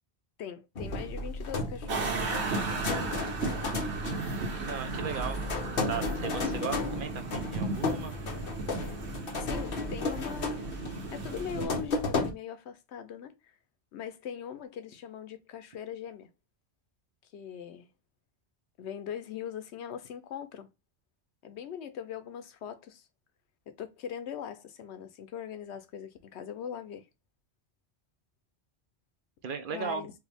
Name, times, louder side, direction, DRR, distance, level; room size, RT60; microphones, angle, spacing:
voice 1, 0.4-2.4 9.4-10.8 11.1-13.3 13.9-16.3 17.2-17.9 18.8-20.7 21.4-23.1 23.8-27.1 29.7-30.1, left 8 dB, 85° left, 0.9 m, -41 dB
sound 1, 0.8-12.3, left 3 dB, 60° left, 1.0 m, -34 dB
sound 2, 1.9-11.7, right 3 dB, 80° right, 1.3 m, -35 dB
voice 2, 4.6-5.4 5.9-8.1 29.4-30.1, right 6 dB, 60° right, 0.7 m, -36 dB
4.5 x 2.3 x 3.4 m
omnidirectional pair, 1.1 m